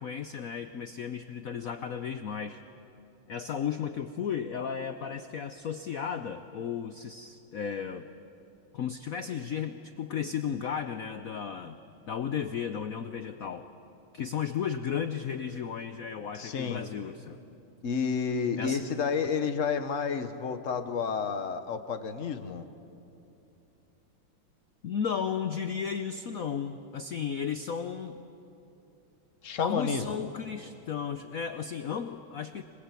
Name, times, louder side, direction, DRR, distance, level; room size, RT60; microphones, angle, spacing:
voice 1, 0.0-2.6 3.3-8.1 8.7-11.8 12.1-13.7 14.1-17.4 18.6-18.9 24.8-28.2 29.6-32.6, left 7 dB, 80° left, 9 dB, 0.7 m, -34 dB
voice 2, 16.3-16.9 17.8-22.7 29.4-30.2, left 6 dB, 45° left, 8 dB, 1.1 m, -30 dB
25.0 x 21.0 x 8.4 m, 2.8 s
omnidirectional pair, 2.4 m